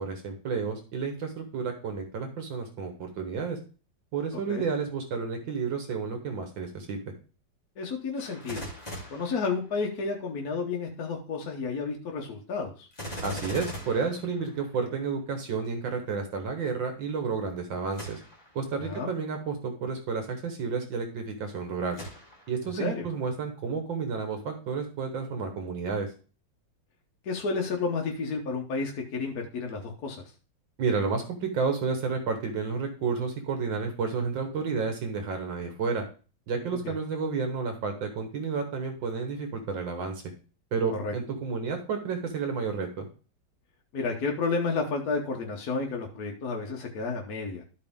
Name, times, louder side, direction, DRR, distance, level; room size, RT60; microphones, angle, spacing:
voice 1, 0.0-3.6 4.1-7.0 13.2-18.2 18.6-22.0 22.5-26.1 30.8-36.0 36.5-40.2 40.7-43.1, right 5 dB, 75° right, 5 dB, 1.8 m, -31 dB
voice 2, 4.3-4.7 7.8-8.6 9.1-12.9 18.8-19.1 22.6-23.0 27.2-30.2 36.8-36.9 41.0-41.1 43.9-47.6, left 4 dB, 55° left, 1 dB, 1.4 m, -31 dB
Gunshot gunfire, 8.2-10.2 12.9-15.0 17.9-18.6 19.2-19.3 21.9-22.7 23.2-23.3, equal, 20° left, 2.0 m, -41 dB
12.5 x 4.7 x 3.6 m, 0.36 s
omnidirectional pair, 2.1 m